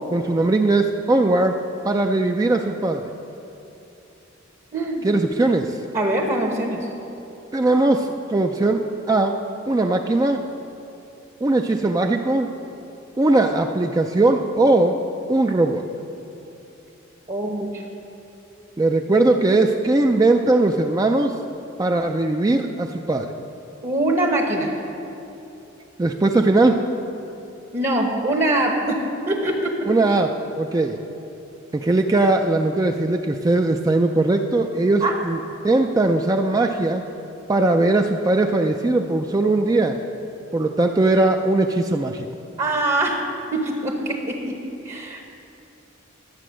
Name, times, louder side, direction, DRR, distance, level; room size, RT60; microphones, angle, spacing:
voice 1, 0.1-1.6 1.8-3.0 5.0-5.8 7.5-8.8 9.1-9.4 9.7-10.4 11.4-12.5 13.2-15.0 15.3-15.8 18.8-21.3 21.8-23.3 26.0-26.8 29.9-31.0 31.7-35.4 35.6-37.0 37.5-40.0 40.5-42.3, right 2 dB, 20° right, 4 dB, 0.3 m, -19 dB
voice 2, 4.7-5.0 5.9-6.9 17.3-17.8 23.8-24.7 27.7-29.0 29.3-29.9 35.0-35.2 42.6-43.2 43.5-44.5 44.8-45.2, right 1 dB, 35° right, 1 dB, 0.9 m, -23 dB
12.0 x 7.6 x 6.2 m, 2.9 s
head